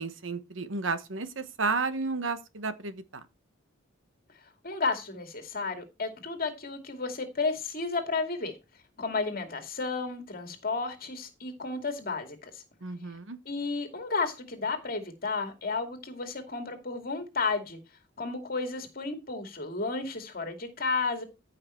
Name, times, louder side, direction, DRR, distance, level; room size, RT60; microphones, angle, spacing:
voice 1, 0.0-3.2 12.8-13.4, right 4 dB, 75° right, 1.2 m, -32 dB
voice 2, 4.6-8.5 9.0-12.6 13.5-17.8 18.2-21.2, left 4 dB, 50° left, 2.4 m, -32 dB
14.5 x 5.7 x 4.5 m
head